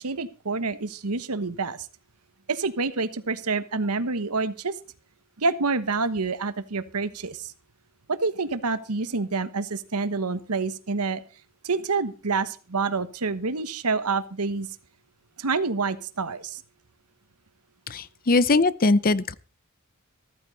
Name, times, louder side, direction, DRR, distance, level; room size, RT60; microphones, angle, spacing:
voice 1, 0.0-1.9 2.5-4.8 5.4-7.5 8.1-11.2 11.6-14.7 15.4-16.6, right 4 dB, 85° right, 1.2 m, -27 dB
voice 2, 17.9-19.3, left 3 dB, 40° left, 0.7 m, -21 dB
14.5 x 14.5 x 4.1 m
head